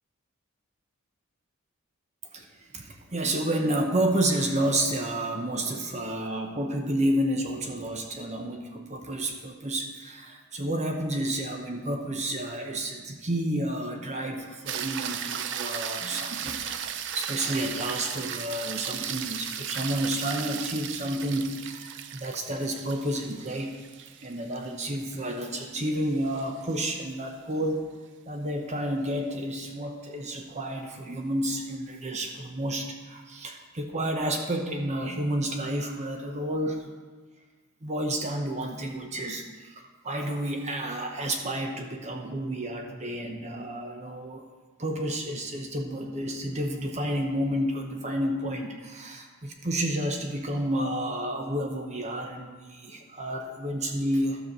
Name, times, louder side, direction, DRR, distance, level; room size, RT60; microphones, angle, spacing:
voice 1, 2.3-23.8 24.2-27.9 28.3-36.8 37.8-44.4 44.8-54.4, right 1 dB, 30° right, 3 dB, 0.9 m, -30 dB
sound 1, 14.7-27.1 31.5-31.6, right 9 dB, 55° right, 0.6 m, -36 dB
12.5 x 4.6 x 6.6 m, 1.4 s
head